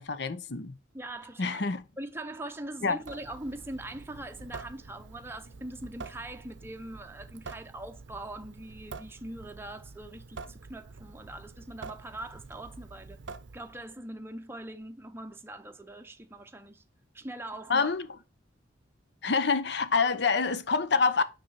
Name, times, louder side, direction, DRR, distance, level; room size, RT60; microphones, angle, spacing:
voice 1, 0.0-0.8 1.4-1.8 2.8-3.0 17.7-18.1 19.2-21.2, left 4 dB, 60° left, 0.8 m, -26 dB
voice 2, 0.9-1.7 2.0-13.2 13.5-16.8 17.1-17.9, right 1 dB, 10° right, 0.7 m, -42 dB
Water tap faucet / Sink (filling or washing) / Drip, 3.0-13.9, right 4 dB, 70° right, 0.6 m, -47 dB
6.2 x 5.6 x 4.1 m
head